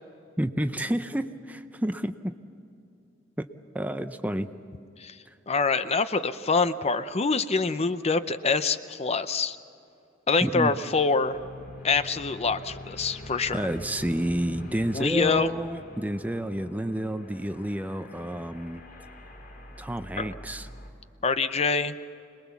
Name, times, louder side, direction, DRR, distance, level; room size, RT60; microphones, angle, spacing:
voice 1, 0.4-2.3 3.4-3.5 3.7-4.5 5.3-5.4 10.4-10.7 13.5-18.8 19.8-20.7, right 1 dB, 10° right, 9 dB, 0.6 m, -30 dB
voice 2, 5.5-9.6 10.3-11.4 11.8-13.7 14.9-15.5 20.2-20.3 21.2-21.9, left 4 dB, 30° left, 12 dB, 0.6 m, -25 dB
sound 1, 11.2-20.9, left 1 dB, 50° left, 3.4 m, -44 dB
26.0 x 20.5 x 7.1 m, 2.7 s
head